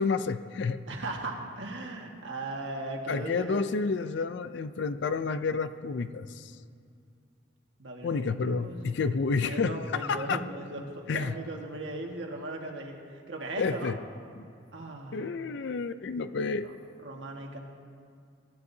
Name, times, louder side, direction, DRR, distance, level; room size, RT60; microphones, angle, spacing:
voice 1, 0.0-0.8 3.1-6.5 8.0-10.4 11.1-11.4 13.6-13.9 15.1-16.7, left 4 dB, 60° left, 12 dB, 0.4 m, -30 dB
voice 2, 0.9-3.6 7.8-8.9 9.4-14.0 14.7-15.3 17.0-17.6, right 2 dB, 65° right, 1 dB, 1.7 m, -38 dB
23.5 x 12.5 x 2.7 m, 2.3 s
head